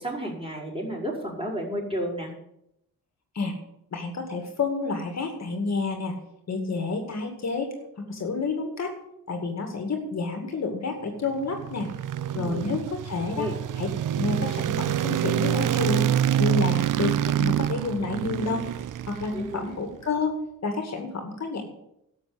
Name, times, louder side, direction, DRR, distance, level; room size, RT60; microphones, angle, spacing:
voice 1, 0.0-2.3 12.3-12.6 13.4-13.5 19.3-19.7, equal, 15° right, -4 dB, 5.2 m, -32 dB
voice 2, 3.9-6.1 6.5-8.9 9.3-11.9 12.3-13.5 13.8-13.9 14.2-16.1 16.4-18.7 19.1-20.4 20.6-21.7, left 3 dB, 45° left, 4 dB, 2.2 m, -29 dB
sound 1, 11.3-19.7, right 11 dB, 60° right, 0.6 m, -26 dB
12.0 x 7.3 x 7.8 m, 0.80 s
cardioid pair, 105°, 35 cm